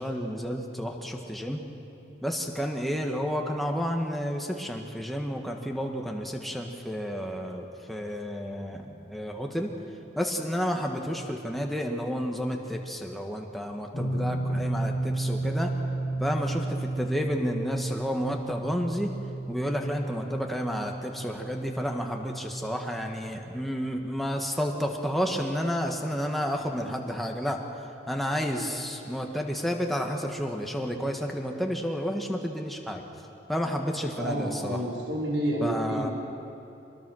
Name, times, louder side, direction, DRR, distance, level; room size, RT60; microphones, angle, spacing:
voice 1, 0.0-1.6 2.2-9.7 10.2-15.7 16.2-19.1 19.5-27.6 28.1-33.0 33.5-34.8 35.6-36.1, equal, ahead, 1 dB, 1.5 m, -31 dB
sound 1, 13.9-26.8, right 2 dB, 40° left, 2.7 m, -34 dB
voice 2, 34.2-36.1, right 1 dB, 90° right, -3 dB, 5.4 m, -29 dB
25.0 x 21.0 x 6.4 m, 2.8 s
head